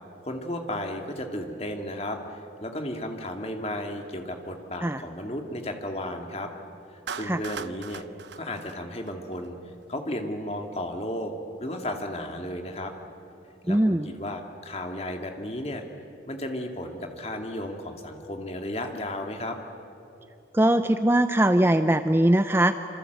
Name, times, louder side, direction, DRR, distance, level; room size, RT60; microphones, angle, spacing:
voice 1, 0.2-6.5 7.1-8.0 8.4-9.6 9.9-11.3 11.6-12.9 13.7-15.8 16.3-19.6, left 1 dB, 35° left, 4 dB, 2.3 m, -34 dB
Clapping, 7.1-9.5, right 6 dB, 75° right, 0.8 m, -39 dB
voice 2, 13.7-14.1 20.5-22.7, right 1 dB, 15° right, 9 dB, 0.6 m, -21 dB
27.0 x 26.5 x 8.1 m, 2.9 s
head